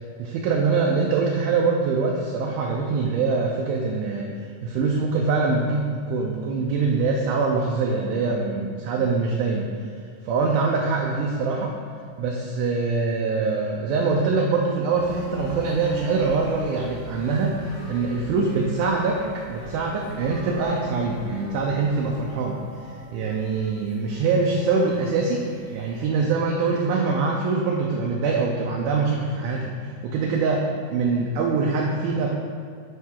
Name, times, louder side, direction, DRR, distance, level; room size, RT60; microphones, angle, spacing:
voice 1, 0.2-4.3 4.6-9.7 10.2-11.8 12.2-17.6 17.9-19.2 19.5-32.3, right 4 dB, 80° right, -1 dB, 1.9 m, -24 dB
sound 1, 14.9-26.1, right 2 dB, 40° left, 1.6 m, -44 dB
Wind instrument woodwind instrument, 15.1-23.4, equal, 70° left, 3.3 m, -44 dB
9.4 x 3.3 x 3.6 m, 2.2 s
omnidirectional pair, 3.9 m